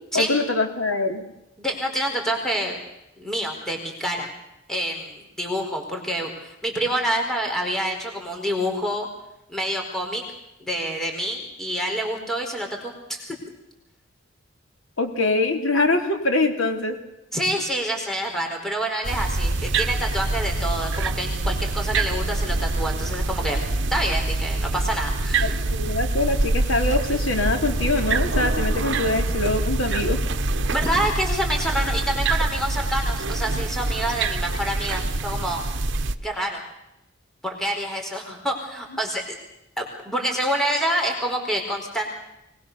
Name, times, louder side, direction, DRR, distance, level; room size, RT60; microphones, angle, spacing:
voice 1, 0.1-1.2 15.0-16.9 25.4-30.2, left 2 dB, 85° left, 5 dB, 3.4 m, -23 dB
voice 2, 1.6-2.8 3.2-4.3 4.7-9.1 9.5-10.2 10.6-13.4 17.3-23.6 23.9-25.6 30.7-35.6 36.2-36.6 37.4-39.4 39.8-42.1, equal, ahead, 1 dB, 4.6 m, -27 dB
sound 1, 19.0-36.1, right 2 dB, 60° right, 1.1 m, -25 dB
24.5 x 20.5 x 6.9 m, 0.86 s
head